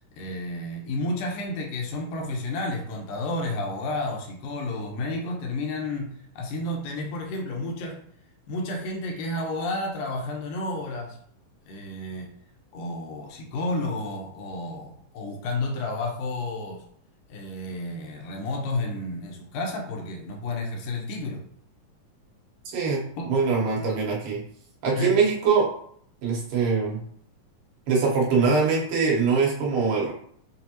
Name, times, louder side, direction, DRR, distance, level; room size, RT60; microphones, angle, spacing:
voice 1, 0.1-8.0 8.5-11.2 11.7-12.3 12.7-16.8 17.3-21.4 23.2-23.4 23.8-23.9 25.0-25.2, left 2 dB, 80° left, 1 dB, 2.4 m, -31 dB
voice 2, 23.3-24.4 24.8-25.7 26.2-27.0 27.9-30.1, right 5 dB, 90° right, -4 dB, 2.9 m, -22 dB
6.6 x 2.5 x 2.9 m, 0.63 s
omnidirectional pair, 3.8 m